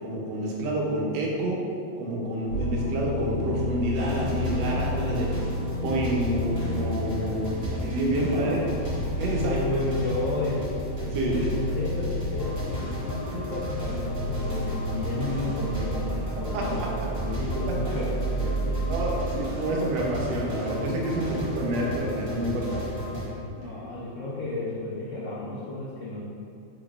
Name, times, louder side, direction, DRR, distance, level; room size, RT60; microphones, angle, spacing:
voice 1, 0.0-1.6 2.0-5.3 5.8-8.6 9.2-9.6 11.1-11.4 16.5-16.9 17.9-18.0 18.9-22.8, right 1 dB, 75° right, -2 dB, 1.3 m, -28 dB
sound 1, 2.5-20.2, equal, 70° left, 1.4 m, -32 dB
sound 2, 3.9-23.3, equal, 45° right, 1.3 m, -34 dB
voice 2, 8.1-10.7 11.3-18.8 23.5-26.2, left 2 dB, 85° left, -9 dB, 0.6 m, -33 dB
3.8 x 3.4 x 2.3 m, 2.4 s
omnidirectional pair, 2.1 m